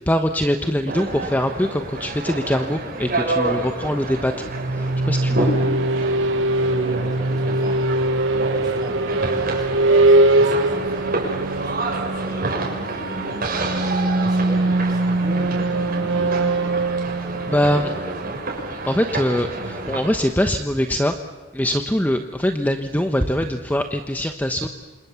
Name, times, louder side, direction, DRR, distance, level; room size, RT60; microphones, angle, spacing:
voice 1, 0.1-5.5 17.5-17.9 18.9-21.1 21.5-24.7, equal, 10° left, 6 dB, 1.1 m, -23 dB
sound 1, 0.9-20.1, right 2 dB, 50° right, 6.7 m, -29 dB
sound 2, 4.4-19.1, right 2 dB, 70° right, 1.0 m, -22 dB
voice 2, 6.6-7.8 8.2-11.2 11.6-16.9 17.4-18.4, right 1 dB, 20° right, 2 dB, 6.6 m, -37 dB
28.0 x 27.0 x 7.1 m, 1.3 s
head